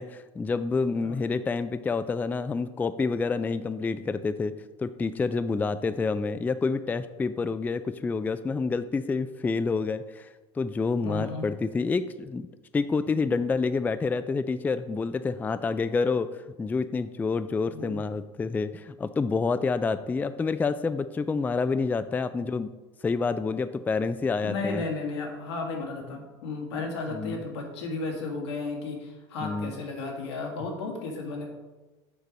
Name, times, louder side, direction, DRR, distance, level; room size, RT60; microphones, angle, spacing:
voice 1, 0.0-10.3 10.6-12.5 12.7-22.7 23.0-24.8 27.1-27.4 29.4-29.7, left 4 dB, 15° left, 12 dB, 0.3 m, -28 dB
voice 2, 11.0-11.5 17.7-18.0 24.4-31.5, left 3 dB, 90° left, 0 dB, 1.8 m, -34 dB
6.6 x 4.6 x 5.2 m, 1.2 s
supercardioid pair, 95°, 14 cm